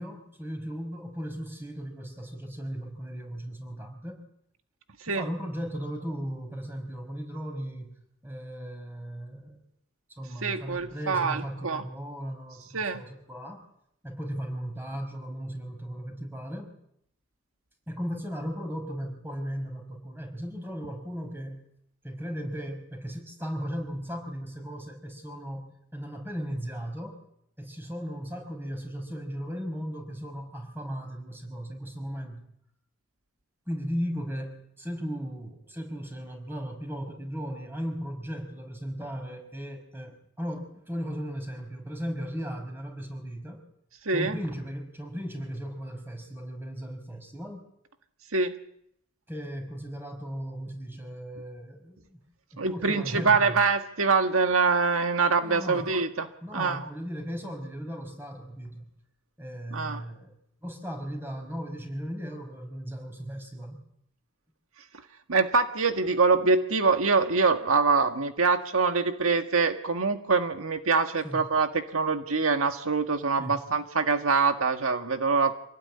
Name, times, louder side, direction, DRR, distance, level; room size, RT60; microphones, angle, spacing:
voice 1, 0.0-4.2 5.1-9.6 10.2-13.6 14.0-16.7 17.9-21.7 22.0-27.2 27.6-32.4 33.7-43.6 44.1-47.6 49.3-52.2 52.5-53.6 55.4-55.9 56.4-58.9 59.4-60.3 60.6-63.8 71.2-71.6 73.4-73.6, equal, 10° right, 5 dB, 5.2 m, -36 dB
voice 2, 10.4-11.8 12.7-13.0 44.1-44.4 48.3-48.6 52.6-56.3 56.5-56.8 59.7-60.0 65.3-75.5, right 4 dB, 85° right, 7 dB, 1.8 m, -24 dB
26.0 x 18.5 x 9.9 m, 0.74 s
head